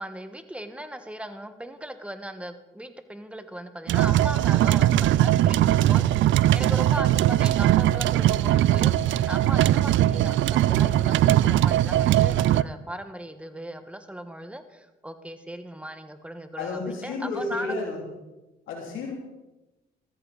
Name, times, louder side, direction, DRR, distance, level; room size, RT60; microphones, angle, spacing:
voice 1, 0.0-6.2 6.5-17.8, right 1 dB, 5° right, 9 dB, 1.4 m, -38 dB
sound 1, 3.9-12.6, right 13 dB, 75° right, 0.4 m, -20 dB
voice 2, 16.6-18.0 18.7-19.2, left 3 dB, 90° left, 0 dB, 2.8 m, -31 dB
14.0 x 13.5 x 4.1 m, 1.0 s
cardioid pair, 90°, 20 cm